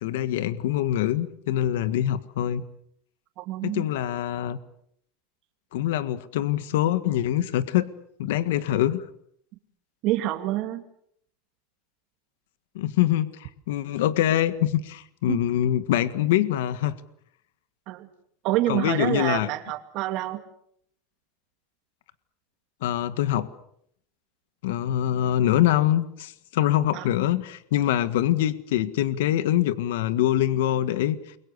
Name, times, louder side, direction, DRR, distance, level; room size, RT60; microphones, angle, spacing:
voice 1, 0.0-2.6 3.6-4.6 5.7-7.9 8.2-9.0 12.7-16.9 18.7-19.5 22.8-23.5 24.6-31.2, left 12 dB, 90° left, 13 dB, 1.7 m, -24 dB
voice 2, 3.4-3.9 10.0-10.8 15.3-15.4 17.9-18.1 18.4-20.4 26.9-27.1, right 14 dB, 50° right, 5 dB, 2.4 m, -27 dB
29.5 x 23.0 x 6.9 m, 0.69 s
supercardioid pair, 145°, 0 cm